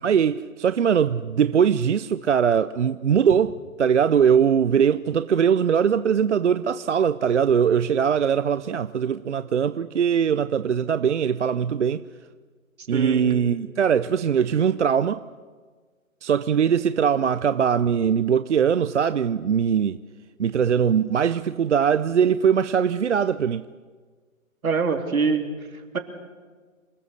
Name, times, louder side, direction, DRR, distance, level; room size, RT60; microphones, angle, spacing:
voice 1, 0.0-12.0 12.9-15.2 16.2-20.0 20.4-23.6, right 7 dB, 55° right, 0.6 m, -21 dB
voice 2, 12.9-13.2 24.6-26.0, right 4 dB, 80° right, 3.5 m, -25 dB
27.5 x 20.0 x 6.6 m
hypercardioid pair, 165°, 42 cm